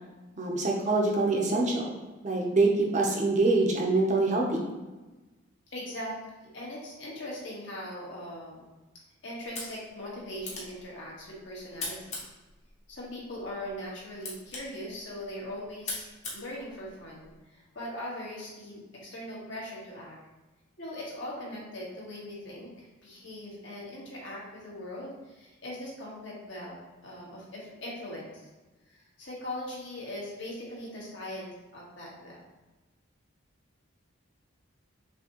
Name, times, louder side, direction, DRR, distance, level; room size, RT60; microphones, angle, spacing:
voice 1, 0.4-4.6, right 2 dB, 35° right, 0 dB, 0.7 m, -25 dB
voice 2, 5.7-6.2 6.5-8.6 9.2-12.2 12.9-20.2 20.8-28.4 28.9-32.4, left 1 dB, 60° left, -5 dB, 1.5 m, -40 dB
sound 1, 9.4-17.4, left 2 dB, 35° left, 1.0 m, -43 dB
6.1 x 2.8 x 2.9 m, 1.2 s
head